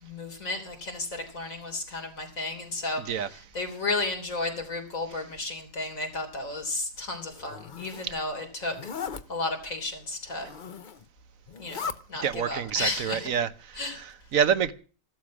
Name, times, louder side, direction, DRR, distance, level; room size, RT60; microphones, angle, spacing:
voice 1, 0.0-8.9 9.3-10.5 11.6-13.3 13.7-14.0, left 2 dB, 85° left, 4.0 m, -33 dB
voice 2, 3.0-3.3 8.0-8.1 12.2-14.7, right 8 dB, 85° right, 1.4 m, -27 dB
Zipper (clothing), 7.3-8.1 8.7-9.2 10.3-11.0 11.5-12.0, left 6 dB, 45° left, 0.9 m, -37 dB
15.0 x 12.5 x 6.3 m
omnidirectional pair, 1.4 m